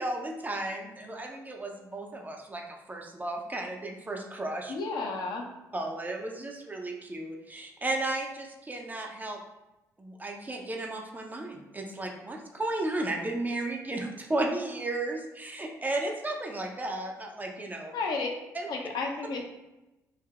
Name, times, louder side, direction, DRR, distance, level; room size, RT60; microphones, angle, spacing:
voice 1, 0.0-4.7 5.7-9.4 10.0-17.9 18.5-18.7, right 2 dB, 20° right, 1 dB, 0.5 m, -34 dB
voice 2, 4.7-5.5 17.9-18.3 18.7-19.4, left 4 dB, 50° left, 1 dB, 0.5 m, -32 dB
3.3 x 2.7 x 2.3 m, 1.0 s
figure-of-eight pair, 45°, 9 cm